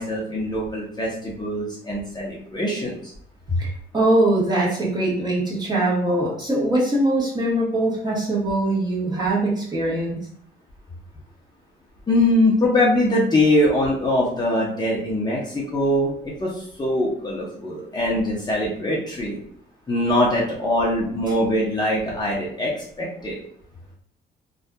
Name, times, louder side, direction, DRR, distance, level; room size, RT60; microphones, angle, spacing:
voice 1, 0.0-3.1 12.1-16.1 16.4-19.4 19.9-22.7 23.0-23.4, left 1 dB, 20° left, -5 dB, 0.7 m, -22 dB
voice 2, 3.9-10.2, right 1 dB, 20° right, -6 dB, 1.2 m, -22 dB
2.6 x 2.4 x 2.2 m, 0.64 s
cardioid pair, 90°, 20 cm